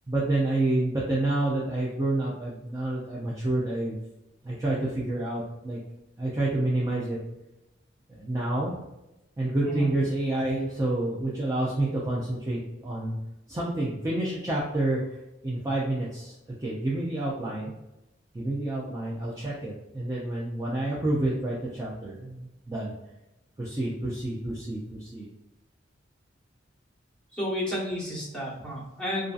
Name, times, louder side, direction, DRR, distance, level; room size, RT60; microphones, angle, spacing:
voice 1, 0.1-4.0 4.4-5.8 6.2-7.2 8.1-8.8 9.4-13.2 13.5-15.0 15.4-16.3 16.6-17.7 18.3-22.9 23.6-25.3, right 2 dB, 20° right, -6 dB, 0.4 m, -28 dB
voice 2, 27.3-29.3, left 1 dB, 5° left, -6 dB, 1.0 m, -32 dB
2.6 x 2.4 x 2.3 m, 0.94 s
head